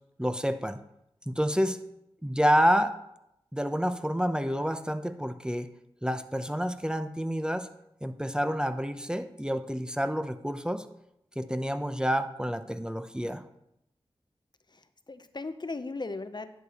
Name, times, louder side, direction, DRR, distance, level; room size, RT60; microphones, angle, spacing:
voice 1, 0.2-0.8 1.3-1.8 2.2-3.0 3.5-5.7 6.0-7.7 8.0-10.9 11.4-13.4, equal, 10° right, 10 dB, 0.7 m, -28 dB
voice 2, 14.7-16.5, left 3 dB, 45° left, 11 dB, 0.6 m, -37 dB
10.5 x 6.7 x 4.2 m, 0.80 s
cardioid pair, 45°, 11 cm